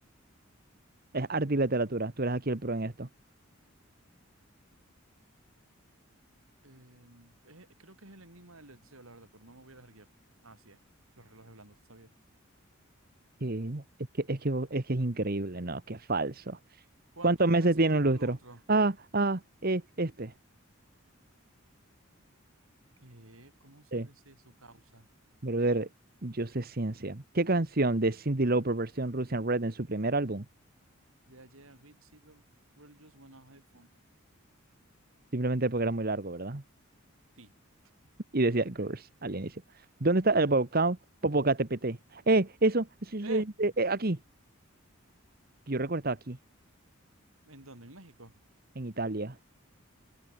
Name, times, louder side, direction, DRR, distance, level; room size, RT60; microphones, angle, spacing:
voice 1, 1.1-3.1 13.4-13.8 14.2-16.6 17.2-18.4 18.7-20.3 23.9-24.1 25.4-25.9 26.2-30.4 35.3-36.6 38.3-39.6 40.0-41.0 41.2-44.2 45.7-46.4 48.7-49.4, right 2 dB, 45° right, 1.3 m, -28 dB
voice 2, 6.6-10.1 10.4-10.8 11.2-12.1 17.1-18.6 23.0-25.1 31.3-32.4 32.8-33.9 37.4-37.5 43.2-43.5 47.4-48.3, right 2 dB, 80° right, 4.5 m, -51 dB
head